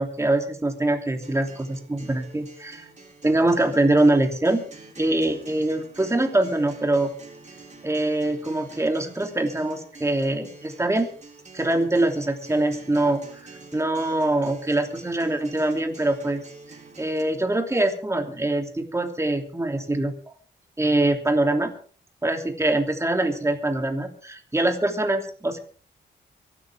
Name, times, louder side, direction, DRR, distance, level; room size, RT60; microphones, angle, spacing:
voice 1, 0.0-2.8 3.2-4.7 5.0-7.1 7.8-11.1 11.5-16.4 17.0-20.2 20.8-21.7 22.2-25.6, right 2 dB, 15° right, 4 dB, 2.9 m, -23 dB
Acoustic guitar, 1.2-17.2, right 3 dB, 35° right, 4.3 m, -47 dB
24.0 x 12.5 x 3.6 m, 0.40 s
cardioid pair, 100°, 20 cm